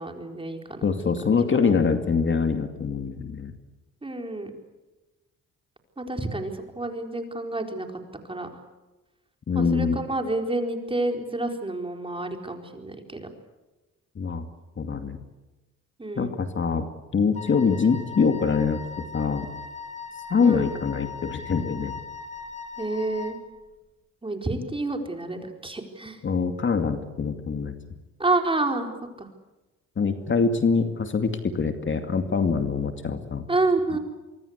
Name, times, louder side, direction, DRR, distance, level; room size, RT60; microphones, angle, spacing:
voice 1, 0.0-1.1 1.5-1.7 4.0-4.5 6.0-7.9 8.2-8.5 9.5-13.3 16.0-16.3 20.4-20.7 22.8-23.4 24.2-26.2 28.2-28.9 29.2-29.3 33.5-34.0, right 2 dB, 15° right, 4 dB, 4.4 m, -29 dB
voice 2, 0.8-3.5 9.5-10.0 14.2-14.4 14.8-15.2 16.2-16.9 17.1-18.8 19.1-19.5 20.3-22.0 26.2-27.7 30.0-33.4 33.9-34.0, left 5 dB, 40° left, 7 dB, 2.4 m, -24 dB
Wind instrument woodwind instrument, 17.3-23.4, left 5 dB, 25° left, 2.8 m, -39 dB
25.5 x 23.5 x 8.3 m, 1.1 s
cardioid pair, 90°, 30 cm